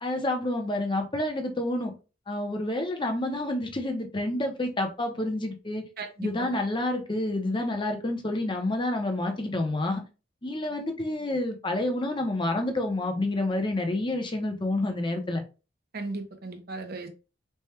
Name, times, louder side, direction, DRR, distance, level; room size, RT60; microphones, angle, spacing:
voice 1, 0.0-1.9 2.3-5.8 6.2-10.0 10.4-15.4, left 1 dB, 25° left, 0.7 m, -29 dB
voice 2, 6.0-6.6 15.9-17.1, right 3 dB, 50° right, 0.8 m, -36 dB
3.4 x 2.2 x 4.3 m
head